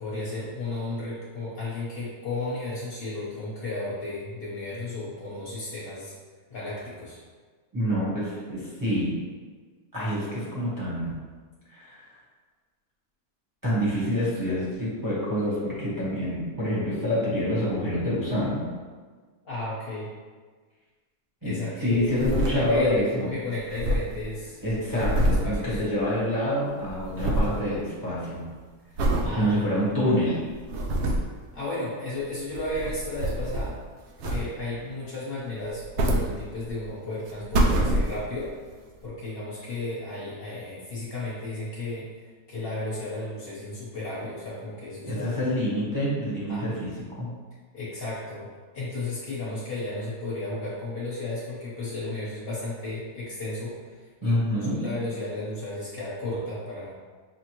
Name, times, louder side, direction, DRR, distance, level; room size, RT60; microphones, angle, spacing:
voice 1, 0.0-6.1 6.5-7.2 19.4-20.1 21.4-22.1 22.4-24.6 24.9-25.8 28.8-28.9 29.2-29.6 31.5-33.8 34.3-38.5 39.0-45.4 46.5-46.7 47.7-48.5 48.7-56.9, left 2 dB, 45° left, -9 dB, 1.0 m, -34 dB
voice 2, 7.7-9.2 9.9-11.2 11.7-12.1 13.6-18.7 21.4-23.3 24.6-28.5 29.3-30.4 45.1-47.3 54.2-54.8, equal, 15° right, -8 dB, 0.8 m, -27 dB
sound 1, 21.9-23.1 23.3-23.4 23.6-26.4 26.6-27.6 28.1-28.4 29.0-29.3 29.9-30.0 30.5-31.4 32.4-33.8 34.2-34.8 35.6-36.9 37.3-38.5 39.0-39.1, right 1 dB, 80° right, 1.1 m, -26 dB
5.8 x 2.1 x 3.0 m, 1.5 s
omnidirectional pair, 1.7 m